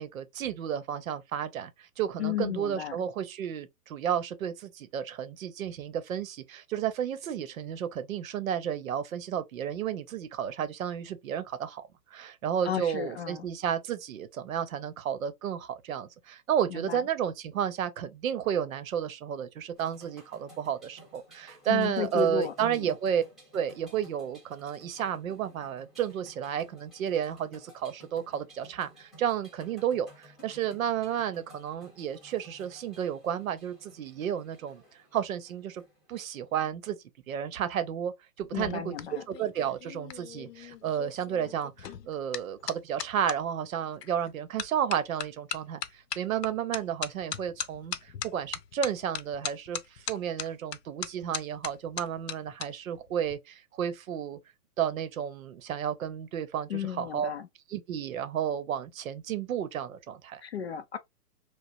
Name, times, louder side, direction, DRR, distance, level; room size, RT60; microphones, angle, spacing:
voice 1, 0.0-11.8 12.1-23.2 23.5-34.8 35.1-35.8 36.1-37.0 37.3-38.1 38.4-38.9 39.3-45.8 46.1-54.4 54.8-57.3 57.7-60.4, right 9 dB, 55° right, 0.8 m, -32 dB
voice 2, 2.2-3.0 12.6-13.5 16.7-17.0 21.7-22.9 38.5-39.2 56.7-57.5 60.4-61.0, left 9 dB, 45° left, 0.4 m, -33 dB
sound 1, 19.7-36.6, equal, ahead, 0.9 m, -56 dB
sound 2, 38.4-43.4 44.0-44.3 44.6-52.7 52.9-53.3, left 9 dB, 80° left, 0.7 m, -39 dB
4.9 x 2.1 x 2.6 m
hypercardioid pair, 145°, 48 cm